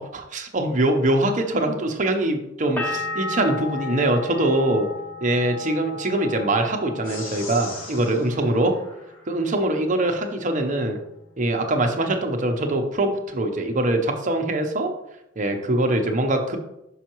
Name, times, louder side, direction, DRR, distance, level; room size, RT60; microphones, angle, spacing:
voice 1, 0.0-4.9 5.2-8.7 9.3-11.0 11.4-14.9 15.4-16.6, right 1 dB, 40° right, 4 dB, 0.7 m, -23 dB
sound 1, 2.8-8.4 8.7-9.4, left 3 dB, 10° left, 0.7 m, -34 dB
sound 2, 7.0-9.7, left 3 dB, 85° left, 1.4 m, -40 dB
5.6 x 5.5 x 3.0 m, 0.86 s
head